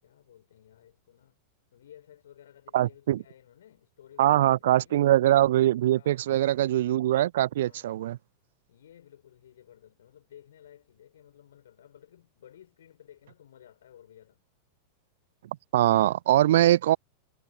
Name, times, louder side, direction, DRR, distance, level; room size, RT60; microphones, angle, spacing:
voice 1, 0.0-1.4 1.7-5.1 6.0-6.6 7.6-8.2 8.7-14.4, left 10 dB, 60° left, 7.5 m, -55 dB
voice 2, 2.7-3.2 4.2-8.2 15.7-17.0, right 13 dB, 55° right, 0.3 m, -22 dB
figure-of-eight pair, 90°, 0 cm